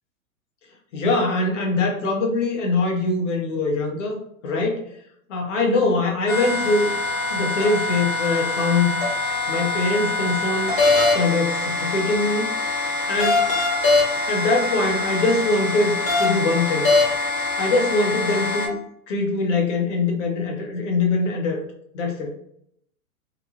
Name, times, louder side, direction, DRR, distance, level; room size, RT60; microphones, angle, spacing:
voice 1, 0.9-4.8 5.3-6.9 7.3-9.0 9.5-10.7 11.1-12.5 13.1-13.4 14.2-16.9 17.6-18.8 19.1-21.6 21.9-22.3, left 3 dB, 55° left, 1 dB, 0.9 m, -23 dB
sound 1, 6.3-18.7, left 2 dB, 70° left, 1.2 m, -23 dB
2.9 x 2.3 x 2.7 m, 0.71 s
figure-of-eight pair, 105°, 44 cm